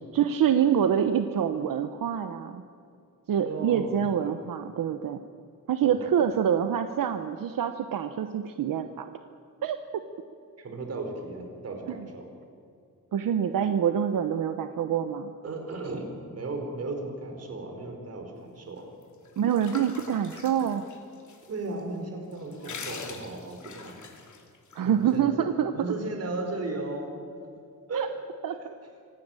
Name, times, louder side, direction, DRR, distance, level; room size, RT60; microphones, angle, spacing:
voice 1, 0.1-2.6 3.3-5.2 5.7-9.1 9.6-10.0 12.0-12.1 13.1-15.3 19.4-20.8 24.7-25.7 27.9-28.1 28.4-28.7, right 8 dB, 85° right, 8 dB, 1.0 m, -26 dB
voice 2, 3.4-4.3 5.8-6.1 10.6-12.3 15.4-18.9 21.5-24.0 24.8-25.5 25.7-27.2 27.9-28.1, right 2 dB, 50° right, 3 dB, 4.7 m, -36 dB
sound 1, 19.0-21.5 21.8-21.9 22.3-24.8, left 5 dB, 60° left, 2.9 m, -43 dB
26.0 x 17.5 x 9.0 m, 2.4 s
wide cardioid pair, 165°, 33 cm